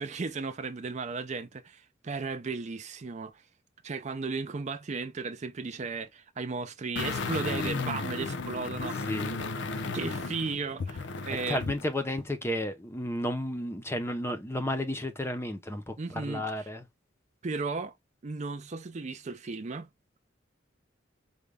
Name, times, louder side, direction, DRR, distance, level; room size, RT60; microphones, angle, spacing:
voice 1, 0.0-3.4 3.8-9.1 9.9-11.7 16.0-16.7 17.4-17.9 18.2-19.9, right 4 dB, 35° right, 0.5 m, -35 dB
sound 1, 7.0-11.9 12.2-12.3, left 3 dB, 65° left, 0.6 m, -34 dB
voice 2, 9.1-9.4 11.5-16.8, left 1 dB, 15° left, 0.6 m, -32 dB
5.0 x 2.2 x 3.3 m
head